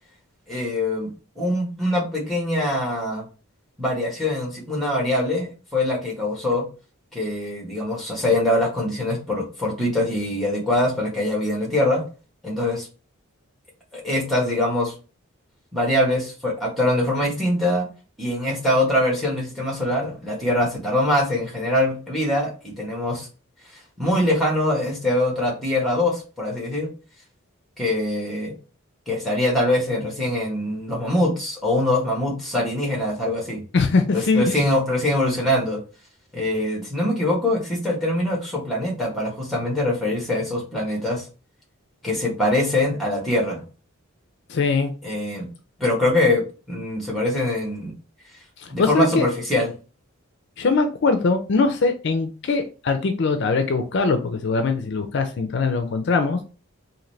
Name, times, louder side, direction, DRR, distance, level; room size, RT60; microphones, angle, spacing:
voice 1, 0.5-1.1 1.4-3.2 3.8-6.6 7.1-12.0 12.4-12.9 13.9-14.9 15.7-17.9 18.2-23.3 24.0-26.9 27.8-28.5 29.1-33.6 34.1-35.8 36.3-41.3 42.0-43.6 45.0-45.5 45.8-47.9 48.7-49.7, left 1 dB, ahead, -1 dB, 1.2 m, -23 dB
voice 2, 33.7-34.6 44.5-44.9 48.6-49.2 50.6-56.4, left 4 dB, 55° left, 7 dB, 0.4 m, -21 dB
3.8 x 2.7 x 3.2 m, 0.35 s
head